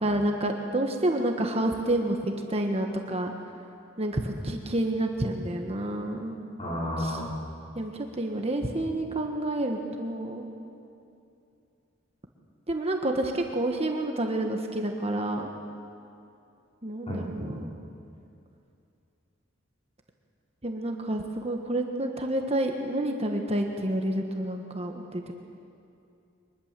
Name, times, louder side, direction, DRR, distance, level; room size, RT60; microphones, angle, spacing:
voice 1, 0.0-3.3 4.0-6.4 7.0-7.2 7.7-10.5 12.7-15.5 16.8-17.7 20.6-25.3, right 1 dB, 30° right, 3 dB, 1.4 m, -29 dB
voice 2, 6.6-7.3 17.1-17.5, equal, 30° left, -4 dB, 5.3 m, -32 dB
23.5 x 21.0 x 7.6 m, 2.6 s
head